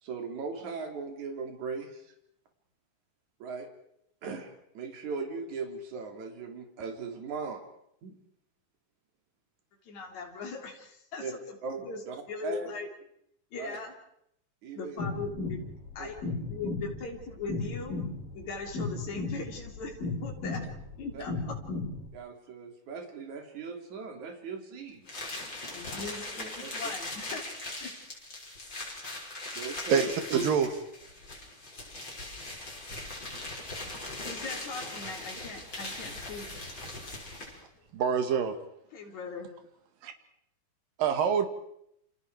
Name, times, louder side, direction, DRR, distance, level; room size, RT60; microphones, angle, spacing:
voice 1, 0.0-2.1 3.4-3.7 4.2-7.6 8.0-8.2 11.2-11.3 11.6-12.7 13.5-13.8 14.6-15.0 16.0-16.1 20.6-20.7 21.1-21.2 22.1-25.1 26.4-26.8 29.5-30.1, right 4 dB, 60° right, 3 dB, 4.4 m, -39 dB
voice 2, 9.8-11.5 11.8-12.0 12.3-12.9 13.5-13.9 14.7-15.6 15.9-16.1 16.5-18.0 18.3-20.6 21.0-21.6 25.3-27.4 27.8-27.9 34.2-36.5 38.9-39.5, left 4 dB, 55° left, 1 dB, 4.9 m, -40 dB
sound 1, 15.0-22.1, left 3 dB, 90° left, 6.4 m, -35 dB
sound 2, 25.1-37.6, left 2 dB, 30° left, 6.6 m, -40 dB
voice 3, 29.9-30.8 37.9-38.6 40.0-40.1 41.0-41.5, right 7 dB, 90° right, 7 dB, 3.6 m, -26 dB
29.0 x 28.5 x 4.8 m, 0.75 s
omnidirectional pair, 3.8 m